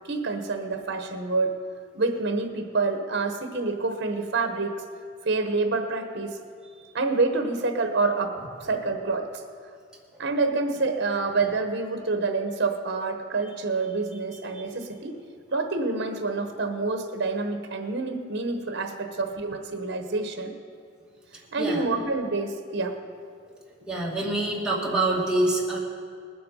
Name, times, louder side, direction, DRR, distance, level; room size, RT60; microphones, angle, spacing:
voice 1, 0.1-1.6 1.9-4.8 5.2-6.4 6.9-9.4 10.2-15.2 15.5-20.5 21.5-23.0, right 3 dB, 60° right, 6 dB, 1.1 m, -27 dB
voice 2, 23.9-25.8, right 2 dB, 5° right, -4 dB, 2.1 m, -25 dB
20.0 x 7.7 x 5.5 m, 2.2 s
head